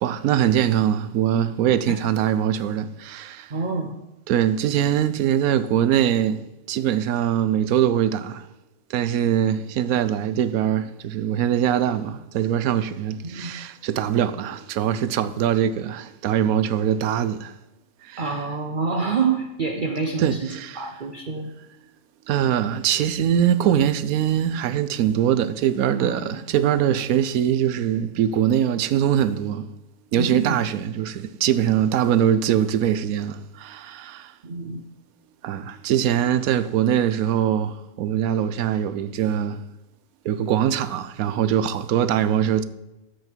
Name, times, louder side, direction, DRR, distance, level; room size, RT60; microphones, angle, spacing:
voice 1, 0.0-3.5 4.3-8.5 8.9-17.6 18.0-18.3 20.2-20.9 22.3-29.7 30.1-34.3 35.4-39.7 40.2-42.6, right 10 dB, 90° right, 1.1 m, -22 dB
voice 2, 3.5-4.0 13.2-13.5 18.2-21.5 26.0-26.4 30.1-30.6 34.4-34.8, right 4 dB, 45° right, 0.8 m, -27 dB
13.0 x 8.0 x 4.5 m
omnidirectional pair, 1.5 m